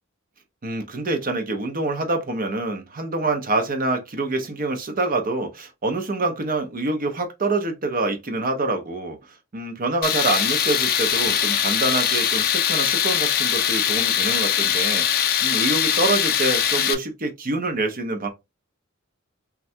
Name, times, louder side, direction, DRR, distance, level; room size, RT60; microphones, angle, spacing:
voice 1, 0.6-9.2 9.5-18.3, right 2 dB, 40° right, 0.7 m, -26 dB
Tools, 10.0-16.9, left 9 dB, 45° left, 0.4 m, -21 dB
3.2 x 2.3 x 2.6 m
head